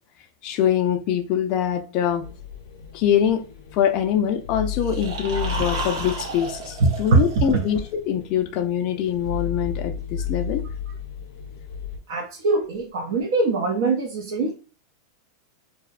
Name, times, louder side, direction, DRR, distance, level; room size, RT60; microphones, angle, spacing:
voice 1, 0.4-2.2 2.9-3.4 3.7-10.6, left 9 dB, 35° left, 0.3 m, -23 dB
sound 1, 2.2-12.0, left 7 dB, 90° left, 0.5 m, -34 dB
sound 2, 4.7-7.9, right 2 dB, 90° right, 0.8 m, -33 dB
voice 2, 6.8-7.6 12.1-14.5, right 3 dB, 60° right, 0.5 m, -22 dB
2.6 x 2.0 x 2.3 m
supercardioid pair, 165°, 2 cm